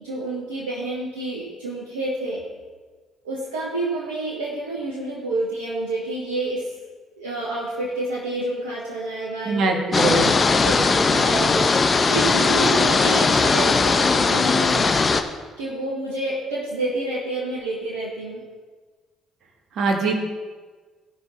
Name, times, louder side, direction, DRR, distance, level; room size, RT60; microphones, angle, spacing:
voice 1, 0.0-2.4 3.2-6.7 7.2-9.7 10.0-10.1 10.5-11.7 12.1-14.9 15.6-18.4, right 2 dB, 85° right, -6 dB, 1.5 m, -28 dB
voice 2, 9.4-10.3 19.8-20.2, right 3 dB, 60° right, 3 dB, 1.9 m, -22 dB
sound 1, 9.9-15.2, left 4 dB, 35° left, 0.9 m, -19 dB
17.0 x 5.9 x 4.4 m, 1.4 s
hypercardioid pair, 50°, 0 cm